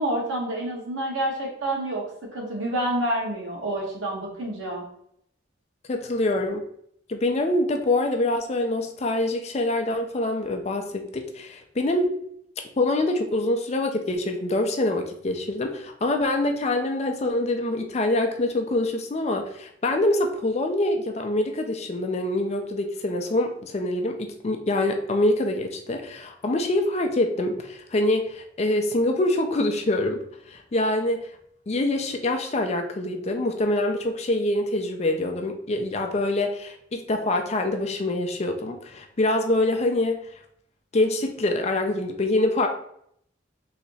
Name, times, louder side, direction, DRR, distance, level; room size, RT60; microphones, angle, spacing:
voice 1, 0.0-2.0 2.3-4.8, right 1 dB, 85° right, -3 dB, 1.4 m, -28 dB
voice 2, 5.9-6.6 7.1-12.1 12.8-30.2 30.5-31.3 31.7-40.2 40.9-42.7, left 1 dB, 35° left, 4 dB, 0.4 m, -25 dB
3.2 x 2.9 x 4.0 m, 0.70 s
head